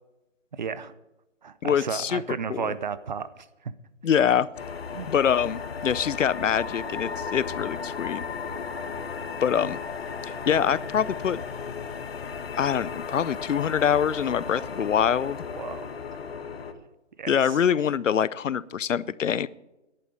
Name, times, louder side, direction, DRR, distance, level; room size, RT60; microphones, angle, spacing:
voice 1, 0.5-0.9 1.4-3.7 4.9-5.1 15.6-15.9 17.2-17.6, right 6 dB, 35° right, 16 dB, 0.7 m, -33 dB
voice 2, 1.6-2.2 2.5-2.7 4.0-4.5 5.1-8.2 9.4-9.8 10.2-11.4 12.6-15.4 17.3-19.5, left 8 dB, 75° left, 20 dB, 0.7 m, -24 dB
sound 1, 4.6-16.7, left 6 dB, 50° left, 1.5 m, -35 dB
11.0 x 8.5 x 9.5 m, 0.99 s
hypercardioid pair, 155°, 38 cm